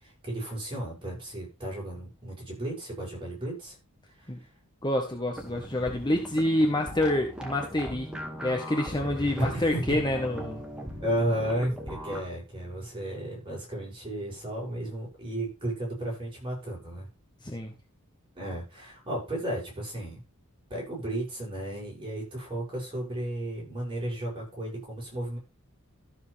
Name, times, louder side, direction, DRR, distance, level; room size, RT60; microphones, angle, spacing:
voice 1, 0.0-3.7 4.2-4.3 9.4-10.0 11.0-17.1 18.3-20.2 20.7-25.4, right 1 dB, 25° right, -2 dB, 7.7 m, -33 dB
voice 2, 4.8-8.1 8.4-10.6 17.4-17.7, left 1 dB, 20° left, 3 dB, 1.4 m, -27 dB
sound 1, 5.3-12.2, equal, 5° right, 2.1 m, -39 dB
13.5 x 7.5 x 3.5 m, 0.27 s
head